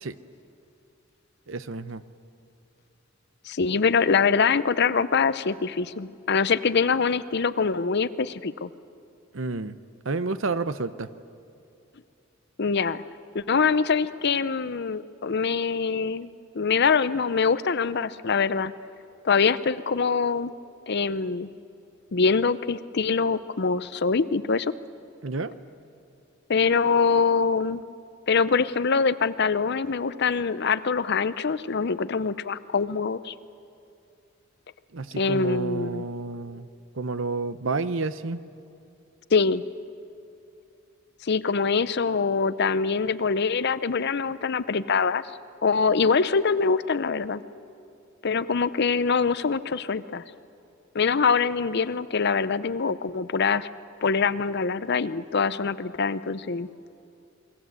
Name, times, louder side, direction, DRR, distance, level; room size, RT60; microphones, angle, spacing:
voice 1, 1.5-2.0 9.3-9.8 10.0-11.1 25.2-25.5 34.9-36.7 36.9-38.4, right 3 dB, 70° right, 13 dB, 0.9 m, -30 dB
voice 2, 3.5-8.7 12.6-13.0 13.3-16.3 16.5-18.7 19.2-20.5 20.9-21.5 22.1-24.7 26.5-27.8 28.3-33.3 35.2-36.0 39.3-39.6 41.2-45.2 45.6-47.4 48.2-50.2 50.9-53.7 54.0-56.7, left 5 dB, 55° left, 15 dB, 0.7 m, -24 dB
28.0 x 21.5 x 8.1 m, 2.6 s
head